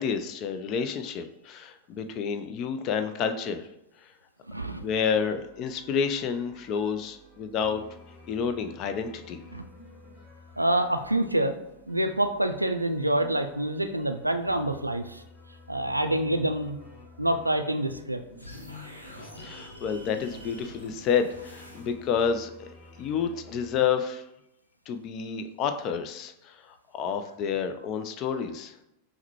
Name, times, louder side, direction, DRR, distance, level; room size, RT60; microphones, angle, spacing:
voice 1, 0.0-3.7 4.7-7.8 8.3-9.4 19.2-22.5 23.0-24.2 24.9-28.7, left 6 dB, 35° left, 8 dB, 0.4 m, -29 dB
voice 2, 4.5-4.9 9.5-9.7 10.6-11.6 11.9-15.2 15.7-16.8 17.2-18.2, right 1 dB, 85° right, 8 dB, 0.3 m, -26 dB
sound 1, 4.7-23.8, left 2 dB, 20° left, 1.1 m, -52 dB
sound 2, 18.4-22.2, left 1 dB, 85° left, 0.7 m, -45 dB
5.6 x 2.1 x 3.0 m, 0.88 s
figure-of-eight pair, 90°, 0 cm